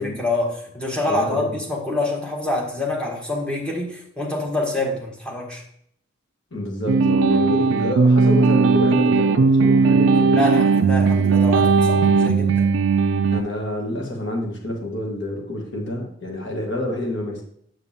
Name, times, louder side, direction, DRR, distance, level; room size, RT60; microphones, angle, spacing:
voice 1, 0.0-5.6 7.3-7.8 10.3-12.7, left 2 dB, 5° left, -2 dB, 1.2 m, -26 dB
voice 2, 1.1-1.6 6.5-10.6 13.3-17.4, left 1 dB, 60° left, 0 dB, 1.5 m, -28 dB
sound 1, 6.9-13.4, right 4 dB, 65° right, 0.4 m, -17 dB
6.9 x 6.4 x 2.8 m, 0.68 s
head